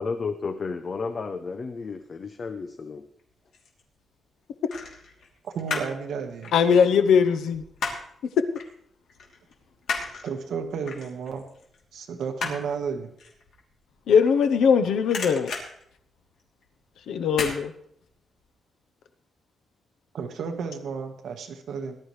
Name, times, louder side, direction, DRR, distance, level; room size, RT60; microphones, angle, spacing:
voice 1, 0.0-3.0, left 4 dB, 30° left, 9 dB, 0.6 m, -32 dB
sound 1, 3.2-3.8 4.7-6.0 6.3-8.2 8.6-8.7 9.1-14.7 15.0-16.7 17.3-17.6 18.0-18.1, left 4 dB, 65° left, 3.0 m, -34 dB
voice 2, 5.4-6.5 10.2-11.4 11.9-13.1 20.1-22.0, right 6 dB, 65° right, 5 dB, 1.4 m, -32 dB
voice 3, 6.5-7.6 14.1-15.5 17.1-17.7, left 6 dB, 85° left, 9 dB, 0.8 m, -20 dB
19.0 x 12.0 x 3.2 m, 0.70 s
wide cardioid pair, 175°, 0 cm